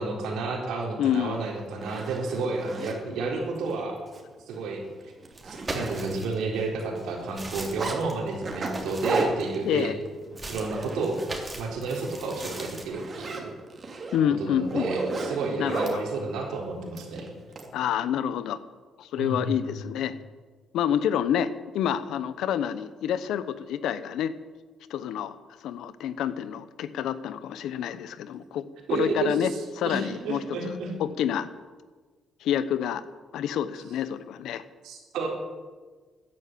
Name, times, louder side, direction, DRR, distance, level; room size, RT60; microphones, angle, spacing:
voice 1, 0.0-4.0 4.5-4.8 5.4-9.9 10.5-11.2 11.6-13.6 14.4-17.3 19.2-19.6 28.9-30.9 34.8-35.3, right 3 dB, 85° right, 0 dB, 4.0 m, -31 dB
voice 2, 1.0-1.4 9.6-10.0 14.1-14.9 15.6-16.0 17.7-18.6 19.0-20.2 20.7-24.3 24.9-25.4 25.6-31.5 32.4-33.0 33.3-34.6, left 9 dB, 85° left, 14 dB, 0.9 m, -28 dB
Zipper (clothing), 1.1-1.2 1.7-3.0 3.6-3.7 4.1-4.2 4.5-4.7 5.0-6.3 6.6-8.0 8.4-11.4 11.7-12.0 12.3-16.0 16.9-17.7, right 3 dB, 40° right, 3.0 m, -34 dB
sound 1, 5.3-6.5 7.0-9.7 10.4-12.9, right 2 dB, 25° right, 3.3 m, -39 dB
13.5 x 9.8 x 9.1 m, 1.4 s
cardioid pair, 90°, 0 cm